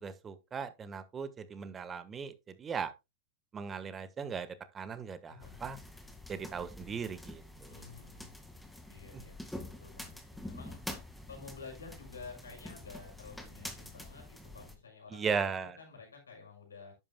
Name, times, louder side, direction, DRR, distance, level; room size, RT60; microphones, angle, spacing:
voice 1, 0.0-2.9 3.5-4.5 4.7-5.3 5.6-5.8 6.3-7.7 15.1-15.8, right 6 dB, 25° right, 1.3 m, -37 dB
voice 2, 5.3-5.7 7.7-8.3 8.9-10.8 11.3-16.9, left 4 dB, 90° left, 5.8 m, -51 dB
sound 1, 5.4-14.8, left 1 dB, 5° left, 1.9 m, -47 dB
11.0 x 8.9 x 2.2 m
hypercardioid pair, 105°, 0 cm